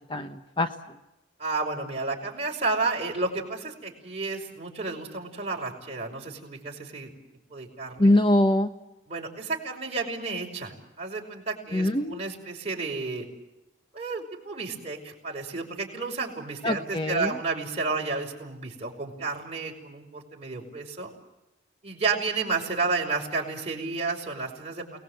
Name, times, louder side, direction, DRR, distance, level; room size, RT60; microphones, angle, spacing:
voice 1, 0.1-0.7 8.0-8.7 11.7-12.2 16.6-17.3, left 1 dB, 25° left, 7 dB, 0.9 m, -23 dB
voice 2, 1.4-7.1 7.5-8.1 9.1-13.3 13.9-21.1 21.8-25.0, right 3 dB, 35° right, -1 dB, 5.3 m, -31 dB
29.5 x 20.0 x 8.0 m, 0.96 s
head